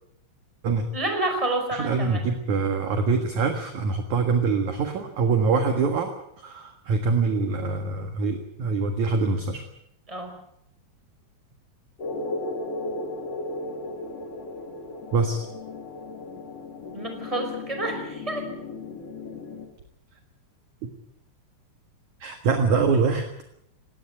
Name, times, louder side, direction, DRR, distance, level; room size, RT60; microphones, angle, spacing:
voice 1, 0.9-2.2 10.1-10.3 16.9-18.4, right 2 dB, 5° right, 4 dB, 4.7 m, -29 dB
voice 2, 1.7-9.6 15.1-15.4 20.8-20.9 22.2-23.3, right 4 dB, 55° right, 6 dB, 2.3 m, -24 dB
sound 1, 12.0-19.7, left 2 dB, 40° left, 2.9 m, -35 dB
19.0 x 18.0 x 9.5 m, 0.75 s
omnidirectional pair, 5.4 m